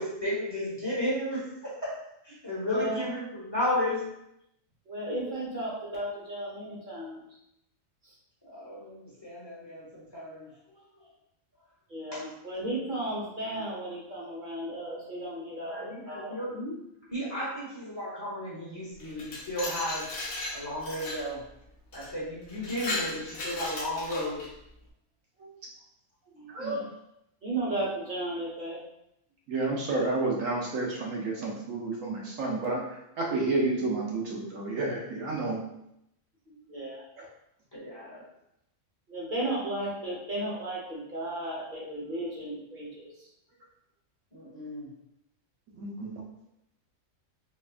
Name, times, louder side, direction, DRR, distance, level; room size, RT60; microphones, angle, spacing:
voice 1, 0.0-2.0 2.2-4.0 8.4-10.5 12.1-12.2 15.7-16.7 17.1-20.1 20.5-21.4 21.9-24.5 37.7-38.2 44.3-44.9, left 1 dB, 20° left, -8 dB, 1.0 m, -33 dB
voice 2, 2.6-3.0 4.9-7.2 11.9-16.4 26.3-26.9 27.4-28.8 36.5-37.0 39.1-43.1, right 1 dB, 40° right, -6 dB, 1.1 m, -34 dB
Glass, 19.0-21.3 21.9-22.1 22.5-24.5, left 2 dB, 60° left, 1.0 m, -36 dB
voice 3, 26.5-26.8 29.5-32.8 33.2-35.6 37.2-37.3 45.8-46.2, right 2 dB, 75° right, -2 dB, 1.1 m, -30 dB
4.1 x 2.6 x 2.4 m, 0.80 s
omnidirectional pair, 1.4 m